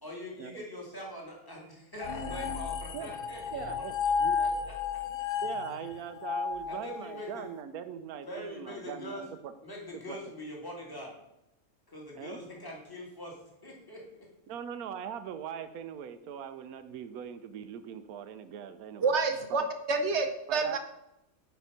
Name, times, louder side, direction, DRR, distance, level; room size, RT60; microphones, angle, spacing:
voice 1, 0.0-5.0 6.7-7.5 8.2-9.2 9.6-11.1 11.9-13.4 13.6-14.3, left 1 dB, 15° left, -2 dB, 1.9 m, -43 dB
sound 1, 2.0-7.4, left 6 dB, 50° left, 0.7 m, -33 dB
voice 2, 3.5-3.9 4.2-4.5 5.4-9.5 10.1-10.2 12.1-12.4 14.5-19.1 20.5-20.8, right 8 dB, 90° right, 10 dB, 1.2 m, -41 dB
voice 3, 19.0-20.8, right 4 dB, 60° right, 6 dB, 0.9 m, -28 dB
8.6 x 4.4 x 5.7 m, 0.85 s
omnidirectional pair, 1.5 m